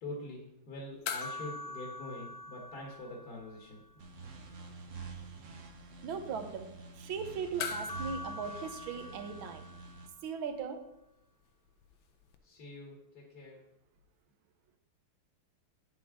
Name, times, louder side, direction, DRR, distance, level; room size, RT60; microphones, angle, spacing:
voice 1, 0.0-3.8 12.4-13.6, left 2 dB, 50° left, -2 dB, 1.9 m, -45 dB
sound 1, 1.1-3.7 4.0-4.1 7.6-10.2 12.3-12.4, left 4 dB, 75° left, 1.5 m, -42 dB
sound 2, 4.0-10.1, right 4 dB, 50° right, 0.9 m, -48 dB
voice 2, 6.0-9.6 10.2-10.8, right 6 dB, 75° right, 7 dB, 1.7 m, -39 dB
9.5 x 7.5 x 3.7 m, 0.85 s
omnidirectional pair, 2.3 m